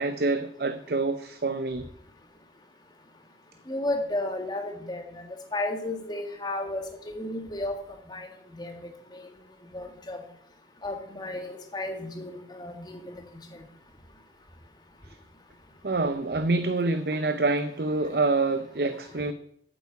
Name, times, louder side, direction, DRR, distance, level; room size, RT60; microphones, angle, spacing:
voice 1, 0.0-1.9 15.8-19.3, right 3 dB, 60° right, 10 dB, 0.7 m, -26 dB
voice 2, 3.7-5.2 5.5-7.7 8.1-8.3 8.5-8.8 9.1-9.2 9.7-10.2 10.8-13.4, left 2 dB, 25° left, 4 dB, 1.8 m, -33 dB
9.1 x 8.2 x 8.3 m, 0.71 s
head